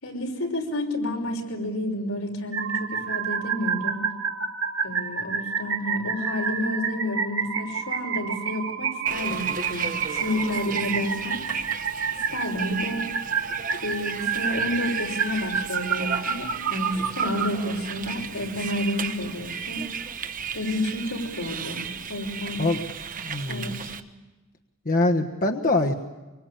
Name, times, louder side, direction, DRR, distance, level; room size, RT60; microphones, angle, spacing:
voice 1, 0.0-4.0 4.8-11.4 12.1-13.0 13.7-19.8 20.5-21.8 22.1-22.6 23.5-23.9, left 1 dB, 90° left, 2 dB, 5.8 m, -30 dB
sound 1, 2.5-17.5, right 6 dB, 65° right, 2.1 m, -29 dB
Bus, 9.1-24.0, right 6 dB, 40° right, 1.2 m, -35 dB
voice 2, 23.2-23.8 24.8-25.9, left 2 dB, 45° left, 3 dB, 1.3 m, -23 dB
25.0 x 24.5 x 8.8 m, 1.2 s
head